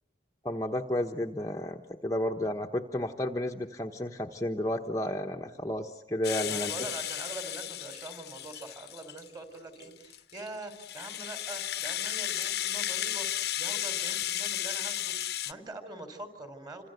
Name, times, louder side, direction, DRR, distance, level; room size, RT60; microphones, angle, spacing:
voice 1, 0.4-6.7, left 1 dB, 20° left, 3 dB, 1.1 m, -32 dB
Rattle (instrument), 6.2-9.3 9.8-15.5, left 12 dB, 65° left, 1.0 m, -34 dB
voice 2, 6.5-16.9, right 2 dB, 20° right, 8 dB, 4.1 m, -44 dB
28.0 x 26.0 x 8.0 m, 0.84 s
head